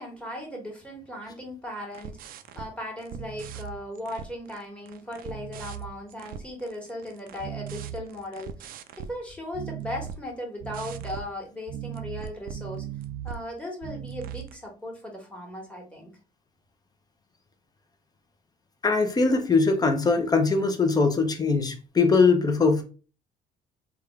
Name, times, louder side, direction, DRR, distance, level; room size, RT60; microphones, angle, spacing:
voice 1, 0.0-12.9 13.2-16.1, left 1 dB, 5° left, 1.4 m, -37 dB
sound 1, 1.9-2.7 3.0-4.6 4.9-9.2 9.5-10.2 10.6-11.3 11.7-13.4 13.8-14.5, right 9 dB, 60° right, 0.4 m, -38 dB
voice 2, 18.8-22.8, left 4 dB, 25° left, 0.6 m, -21 dB
3.6 x 2.3 x 3.2 m
cardioid pair, 110°, 17 cm